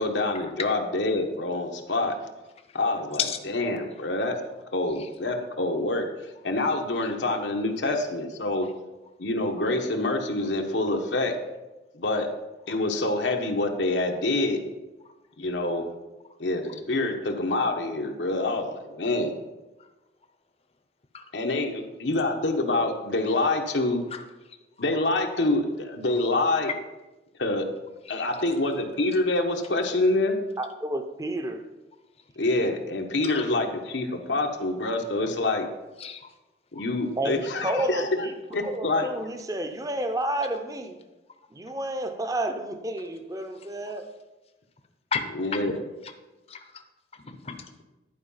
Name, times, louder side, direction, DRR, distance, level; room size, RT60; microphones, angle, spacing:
voice 1, 0.0-2.1 2.7-4.3 4.7-6.0 6.4-8.7 9.2-11.3 11.9-12.3 12.7-14.6 15.4-15.8 16.4-19.3 21.3-24.0 24.8-26.7 27.4-27.7 28.1-30.3 32.4-35.7 36.7-38.1 38.5-39.1 45.3-45.8, left 2 dB, 85° left, 3 dB, 1.1 m, -26 dB
voice 2, 30.6-31.6 37.2-38.3 38.6-41.0 41.5-44.0, right 1 dB, 20° right, 7 dB, 0.6 m, -30 dB
voice 3, 36.0-36.3 36.7-36.8 45.1-45.7 46.5-46.6 47.1-47.8, left 6 dB, 35° left, 7 dB, 0.7 m, -33 dB
11.0 x 4.8 x 5.6 m, 1.1 s
head